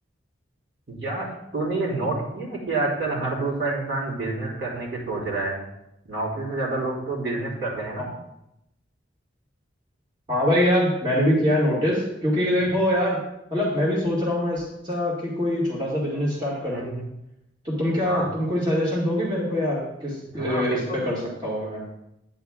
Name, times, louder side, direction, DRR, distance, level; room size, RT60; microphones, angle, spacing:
voice 1, 0.9-1.3 1.5-5.6 6.1-8.0 16.7-17.0 18.0-18.3 20.3-21.0, right 2 dB, 70° right, -4 dB, 3.5 m, -28 dB
voice 2, 10.3-13.2 13.5-16.9 17.6-21.8, equal, 25° right, -6 dB, 2.0 m, -24 dB
10.5 x 9.4 x 2.4 m, 0.84 s
head